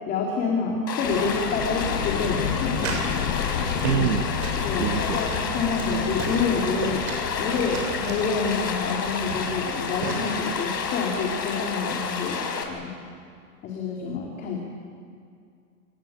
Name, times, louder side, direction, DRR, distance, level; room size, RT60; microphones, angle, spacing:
voice 1, 0.0-2.9 3.9-4.0 4.6-7.1 7.4-12.9 13.6-14.6, left 4 dB, 20° left, 0 dB, 2.8 m, -28 dB
Stream, 0.9-12.6, left 5 dB, 85° left, 5.1 m, -30 dB
sound 1, 1.0-12.5, left 8 dB, 40° left, 2.2 m, -33 dB
sound 2, 2.3-3.1 3.4-4.2 4.4-4.6 5.1-5.2 5.5-5.9 6.2-7.2 7.5-8.2 8.9-9.0 9.3-9.6 10.0-10.3, right 4 dB, 45° right, 7.3 m, -34 dB
voice 2, 3.8-4.3 4.8-5.2 7.7-7.8, right 9 dB, 70° right, 7 dB, 1.4 m, -26 dB
29.0 x 19.5 x 8.7 m, 2.3 s
hypercardioid pair, 160°, 49 cm